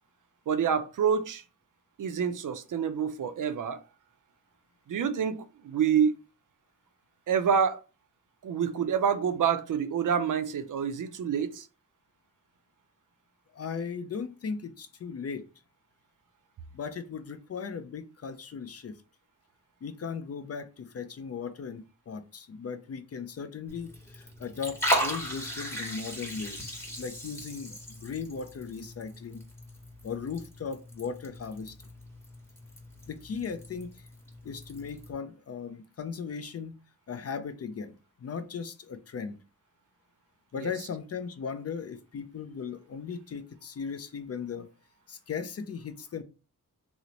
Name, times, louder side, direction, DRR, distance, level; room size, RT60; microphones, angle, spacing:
voice 1, 0.5-1.4 2.0-3.8 4.9-6.2 7.3-7.8 8.4-11.7 40.6-40.7, right 7 dB, 65° right, 0.5 m, -27 dB
voice 2, 13.5-15.4 16.7-19.0 19.8-29.4 30.0-31.8 33.1-34.1 34.4-36.7 37.1-37.9 38.2-39.4 40.5-44.7 45.1-46.2, left 6 dB, 45° left, 0.4 m, -37 dB
Liquid, 23.7-35.1, equal, 5° left, 1.0 m, -37 dB
2.9 x 2.0 x 3.8 m
wide cardioid pair, 100°, 34 cm